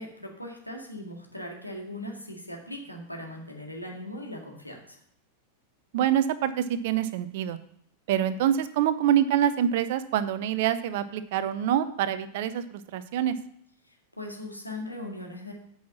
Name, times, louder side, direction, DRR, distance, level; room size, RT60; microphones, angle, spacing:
voice 1, 0.0-5.0 13.8-15.5, left 1 dB, 90° left, 0 dB, 2.0 m, -39 dB
voice 2, 5.9-7.6 8.1-13.4, right 10 dB, 50° right, 14 dB, 0.7 m, -26 dB
8.6 x 5.7 x 7.1 m, 0.68 s
figure-of-eight pair, 90°, 0 cm